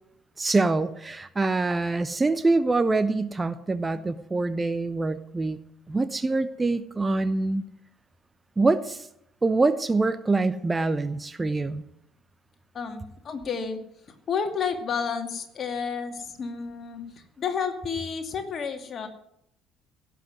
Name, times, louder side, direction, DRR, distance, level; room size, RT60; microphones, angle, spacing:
voice 1, 0.4-5.6 5.9-7.6 8.6-9.1 9.4-11.8, right 3 dB, 20° right, 12 dB, 0.9 m, -25 dB
voice 2, 12.7-13.8 14.3-19.1, left 6 dB, 40° left, 6 dB, 2.5 m, -31 dB
17.0 x 7.8 x 9.4 m, 0.76 s
figure-of-eight pair, 55°, 0 cm